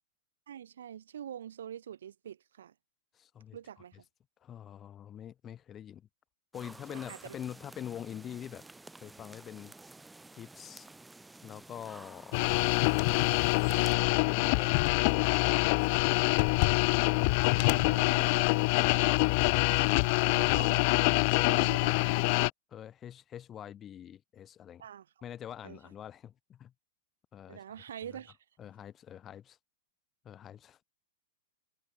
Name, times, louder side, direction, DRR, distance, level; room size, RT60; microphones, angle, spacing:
voice 1, 0.5-2.7 3.5-4.0 6.9-7.4 17.5-18.6 19.5-19.9 20.4-21.0 21.5-22.2 24.8-25.1 25.6-25.8 27.5-28.4, right 9 dB, 75° right, 5.4 m, -45 dB
voice 2, 3.1-3.6 4.4-6.1 6.5-8.6 9.0-9.7 10.3-10.9 11.4-12.5 14.0-16.3 18.7-19.3 22.7-24.8 25.2-26.7 27.3-27.6 28.1-28.2 28.6-29.6 30.2-30.8, left 10 dB, 25° left, 2.3 m, -45 dB
sound 1, 6.5-14.0, right 2 dB, 5° right, 7.2 m, -51 dB
sound 2, 12.3-22.5, left 29 dB, 50° left, 0.4 m, -25 dB
hypercardioid pair, 115°, 0 cm